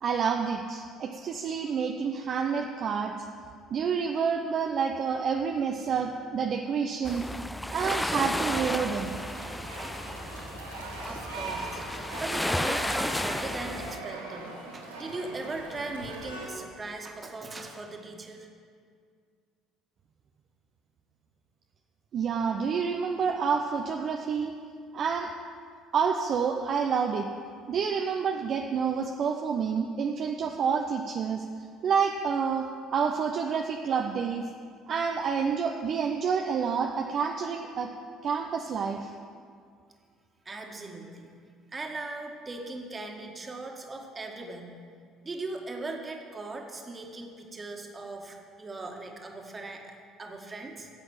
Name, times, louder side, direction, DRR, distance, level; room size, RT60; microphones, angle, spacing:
voice 1, 0.0-3.1 3.7-7.3 7.7-9.2 22.1-24.6 24.9-25.3 25.9-27.3 27.7-31.5 31.8-34.5 34.9-37.9 38.2-39.1, right 6 dB, 45° right, 3 dB, 0.7 m, -28 dB
sound 1, 7.1-14.0, left 1 dB, 10° left, 0.4 m, -33 dB
sound 2, 8.5-16.5, right 2 dB, 85° right, 1.6 m, -40 dB
voice 2, 11.0-11.8 12.1-18.5 40.5-41.3 41.7-44.8 45.2-50.9, right 2 dB, 25° right, 2 dB, 1.9 m, -39 dB
12.5 x 8.0 x 7.3 m, 2.2 s
figure-of-eight pair, 55°, 0 cm